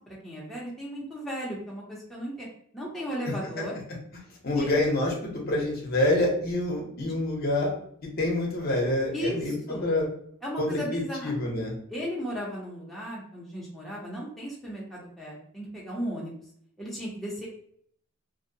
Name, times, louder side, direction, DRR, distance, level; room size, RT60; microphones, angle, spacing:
voice 1, 0.2-2.5 2.7-3.7 4.6-4.7 9.1-9.9 10.4-11.3 11.9-16.4 16.8-17.5, equal, ahead, -6 dB, 0.5 m, -35 dB
voice 2, 4.4-7.7 8.2-10.1 10.6-11.7, left 1 dB, 45° left, -1 dB, 0.7 m, -27 dB
2.6 x 2.0 x 2.5 m, 0.65 s
head